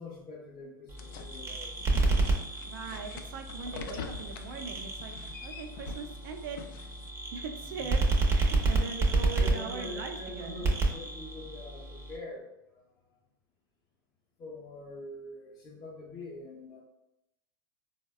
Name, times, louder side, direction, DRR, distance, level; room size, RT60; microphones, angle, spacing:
voice 1, 0.0-1.9 7.5-7.9 9.3-13.0 14.4-16.8, left 2 dB, 35° left, -6 dB, 0.7 m, -44 dB
sound 1, 0.9-12.2, right 3 dB, 20° right, 0.6 m, -30 dB
sound 2, 1.0-7.1, left 5 dB, 60° left, 0.4 m, -45 dB
voice 2, 2.6-5.1 5.4-6.6 7.3-10.7, right 5 dB, 65° right, 5 dB, 0.5 m, -40 dB
3.9 x 2.1 x 2.3 m, 0.88 s
hypercardioid pair, 100°, 12 cm